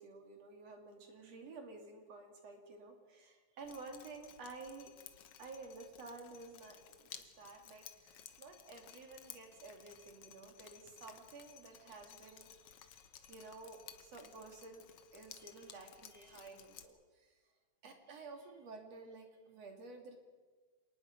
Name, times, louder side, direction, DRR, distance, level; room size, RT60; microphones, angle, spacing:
voice 1, 0.0-4.9 5.4-14.9 15.1-17.4 17.8-20.2, right 3 dB, 60° right, 3 dB, 3.7 m, -52 dB
Drip, 3.6-16.8, left 9 dB, 60° left, 1.9 m, -57 dB
26.5 x 19.0 x 5.3 m, 1.4 s
omnidirectional pair, 3.4 m